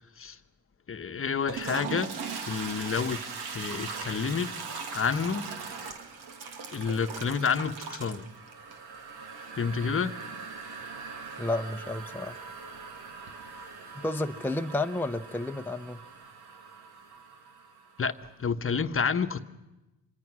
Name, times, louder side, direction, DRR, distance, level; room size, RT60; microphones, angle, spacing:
voice 1, 0.9-2.1 2.4-3.2 3.5-4.5 4.9-5.4 6.7-8.3 9.6-10.2 18.0-19.4, left 6 dB, 35° left, 1.1 m, -29 dB
Toilet flush, 1.3-18.1, right 5 dB, 80° right, 2.4 m, -40 dB
voice 2, 11.4-12.4 14.0-16.0, left 2 dB, 5° left, 0.8 m, -31 dB
26.0 x 23.0 x 6.2 m
supercardioid pair, 65°, 39 cm